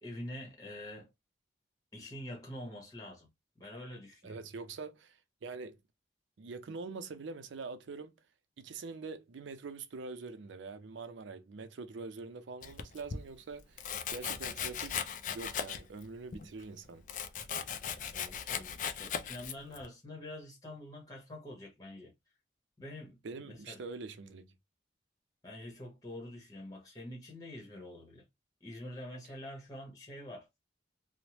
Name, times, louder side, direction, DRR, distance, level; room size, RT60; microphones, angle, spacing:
voice 1, 0.0-1.1 1.9-3.3 3.6-4.4 18.0-22.1 22.8-23.8 25.4-28.2 28.6-30.5, left 1 dB, 20° left, 0.9 m, -46 dB
voice 2, 4.2-5.8 6.4-8.1 8.6-15.0 15.3-17.0 23.2-24.5, right 4 dB, 85° right, 0.5 m, -44 dB
Domestic sounds home sounds, 12.6-13.2 13.8-16.0 16.3-19.9, left 7 dB, 45° left, 0.3 m, -38 dB
3.0 x 2.0 x 2.9 m
head